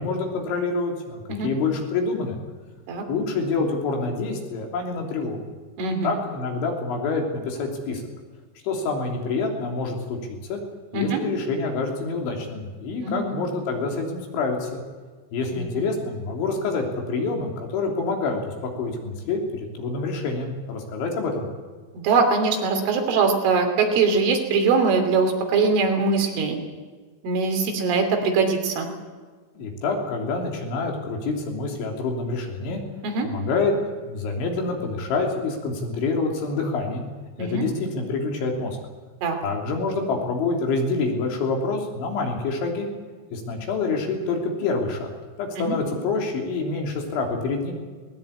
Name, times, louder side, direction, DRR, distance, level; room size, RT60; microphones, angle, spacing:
voice 1, 0.0-2.4 3.1-5.4 6.0-8.0 8.6-10.2 10.5-10.6 10.9-14.8 15.3-21.5 29.6-32.8 33.2-33.8 34.1-37.0 37.4-38.8 39.4-42.9 43.3-45.1 45.4-47.7, left 3 dB, 70° left, 2 dB, 5.5 m, -27 dB
voice 2, 5.8-6.1 10.9-11.2 13.0-13.3 15.5-15.8 22.0-26.6 27.2-28.9 33.0-33.3 37.4-37.7 39.2-39.4 45.6-45.8, right 4 dB, 80° right, 3 dB, 5.5 m, -22 dB
19.5 x 19.5 x 8.7 m, 1.5 s
omnidirectional pair, 5.6 m